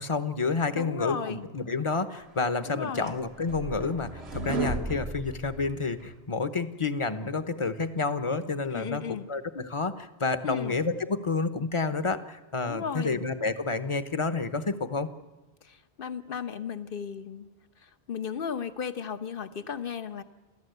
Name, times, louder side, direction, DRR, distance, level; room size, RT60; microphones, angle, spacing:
voice 1, 0.0-15.1, left 4 dB, 30° left, 10 dB, 1.0 m, -29 dB
voice 2, 0.7-1.5 2.6-3.2 8.7-9.3 10.4-10.8 12.6-13.2 15.6-17.5 17.8-20.2, left 7 dB, 60° left, 9 dB, 1.2 m, -35 dB
sound 1, 2.5-6.1, right 2 dB, 85° right, 1.8 m, -35 dB
29.0 x 14.0 x 8.1 m, 1.2 s
omnidirectional pair, 1.1 m